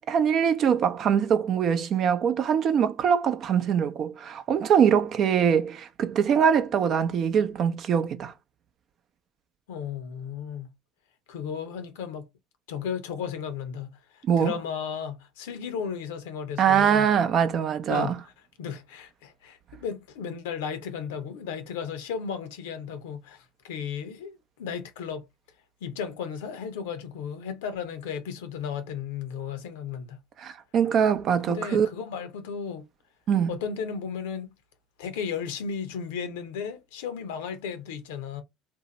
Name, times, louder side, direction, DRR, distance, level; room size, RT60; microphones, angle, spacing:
voice 1, 0.0-8.3 14.3-14.5 16.6-18.1 30.4-31.9 33.3-33.5, right 7 dB, 50° right, 0.6 m, -23 dB
voice 2, 9.7-10.7 11.3-12.3 12.7-17.1 17.9-18.3 18.6-25.2 25.8-30.2 31.5-32.8 33.5-34.5 35.0-38.4, left 7 dB, 85° left, 0.7 m, -34 dB
2.7 x 2.1 x 3.9 m
supercardioid pair, 85°, 0 cm